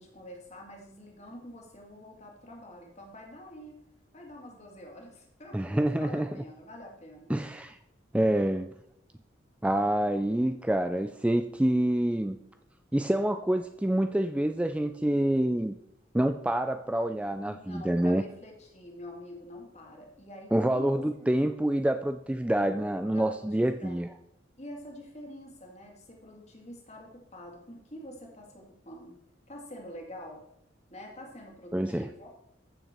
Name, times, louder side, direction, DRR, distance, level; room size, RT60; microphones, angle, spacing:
voice 1, 0.0-3.8 4.1-7.3 17.4-21.0 23.1-24.0 24.6-29.2 29.5-30.4 30.9-32.3, left 1 dB, 35° left, 1 dB, 2.3 m, -46 dB
voice 2, 5.5-6.3 7.3-7.8 8.1-8.7 9.6-12.4 12.9-15.8 16.1-18.3 20.5-24.1 31.7-32.1, right 1 dB, 5° right, 8 dB, 0.3 m, -27 dB
14.5 x 6.5 x 4.4 m, 0.81 s
head